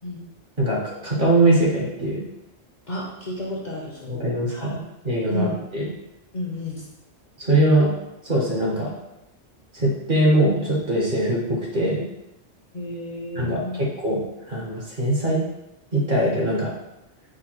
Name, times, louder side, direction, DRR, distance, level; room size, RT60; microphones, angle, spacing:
voice 1, 0.6-2.2 4.1-5.9 7.4-7.9 8.2-8.9 9.7-12.1 13.3-15.4 15.9-16.7, right 1 dB, 45° right, -4 dB, 1.2 m, -22 dB
voice 2, 2.9-4.1 4.5-4.7 5.3-5.6 6.3-6.8 12.7-13.9, left 1 dB, 45° left, -3 dB, 0.8 m, -31 dB
5.1 x 2.2 x 4.4 m, 0.90 s
omnidirectional pair, 1.2 m